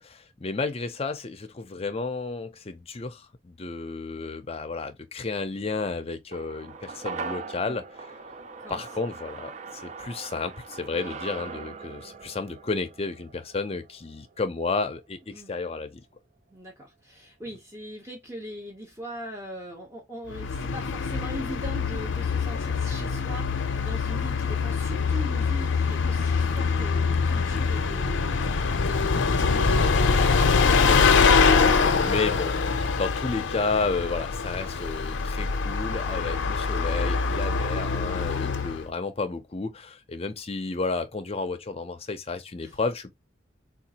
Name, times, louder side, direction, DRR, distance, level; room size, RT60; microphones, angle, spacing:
voice 1, 0.0-7.8 8.7-16.0 27.5-27.7 30.9-43.1, left 3 dB, 35° left, 0.5 m, -32 dB
sound 1, 6.3-14.8 15.1-15.2, right 4 dB, 40° right, 0.3 m, -40 dB
voice 2, 16.5-30.5 42.6-42.8, equal, 15° right, 0.8 m, -41 dB
Bus, 20.3-38.9, left 5 dB, 90° left, 0.5 m, -24 dB
3.7 x 2.4 x 2.8 m
head